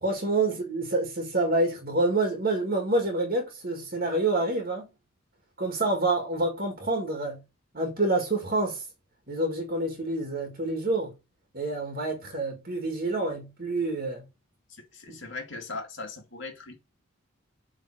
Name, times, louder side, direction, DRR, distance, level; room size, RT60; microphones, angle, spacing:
voice 1, 0.0-4.9 5.6-7.4 7.7-8.8 9.3-11.1 11.5-14.2 15.1-15.2, right 2 dB, 45° right, 1.9 m, -27 dB
voice 2, 14.9-16.7, left 3 dB, 60° left, 2.4 m, -38 dB
7.7 x 3.8 x 5.8 m
head